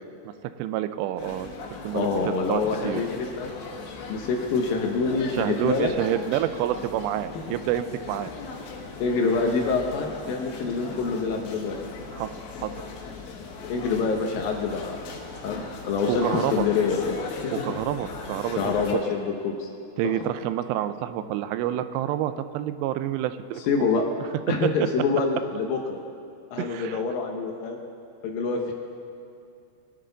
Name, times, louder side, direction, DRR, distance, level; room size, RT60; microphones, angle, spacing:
voice 1, 0.6-1.5 1.8-3.0 5.3-8.3 12.1-12.3 12.6-12.7 16.1-16.7 17.5-18.7 20.0-23.6 26.6-27.0, right 12 dB, 90° right, 12 dB, 2.8 m, -28 dB
sound 1, 1.2-18.9, left 4 dB, 85° left, 3.6 m, -38 dB
voice 2, 1.9-3.5 3.9-5.9 9.0-11.8 13.7-15.0 15.4-17.7 18.6-19.7 20.0-20.2 23.6-24.0 24.5-26.0 26.5-27.8 28.2-28.7, left 4 dB, 70° left, 2 dB, 2.3 m, -26 dB
21.5 x 10.5 x 3.9 m, 2.5 s
omnidirectional pair, 4.9 m